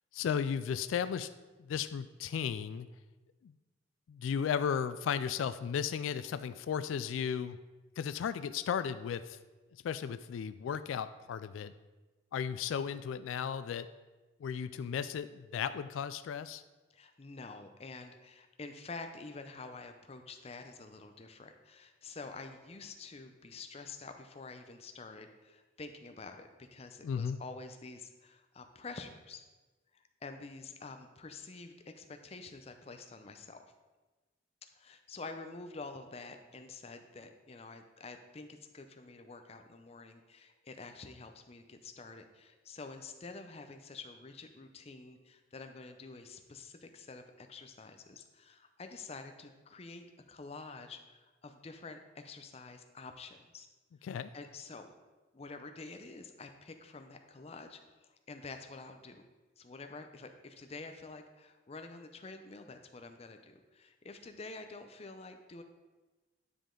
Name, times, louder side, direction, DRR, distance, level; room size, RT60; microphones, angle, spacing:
voice 1, 0.1-1.3 1.6-2.9 3.4-3.5 4.1-7.6 8.0-9.4 9.7-11.7 12.3-13.9 14.4-16.6 27.0-27.4 54.0-54.3, left 7 dB, 85° left, 14 dB, 0.3 m, -35 dB
voice 2, 16.9-29.4 29.9-33.6 34.7-53.7 54.3-54.9 55.3-59.2 59.6-65.6, left 3 dB, 30° left, 6 dB, 0.5 m, -48 dB
9.8 x 5.1 x 3.7 m, 1.2 s
head